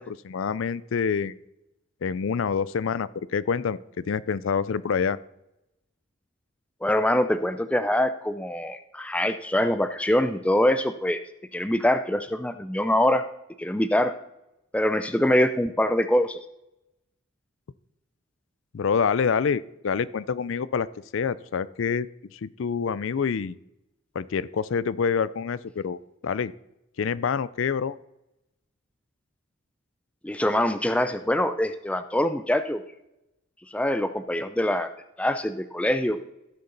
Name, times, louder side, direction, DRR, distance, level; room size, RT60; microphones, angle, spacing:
voice 1, 0.0-1.3 2.0-3.8 4.0-5.2 18.7-20.9 21.1-23.6 24.1-26.0 26.2-26.5 27.0-28.0, left 6 dB, 65° left, 17 dB, 0.4 m, -26 dB
voice 2, 6.8-11.2 11.5-13.2 13.6-14.1 14.7-16.4 30.2-32.8 33.7-34.9 35.2-36.2, left 1 dB, 5° left, 10 dB, 0.4 m, -24 dB
15.5 x 6.8 x 4.0 m, 0.88 s
head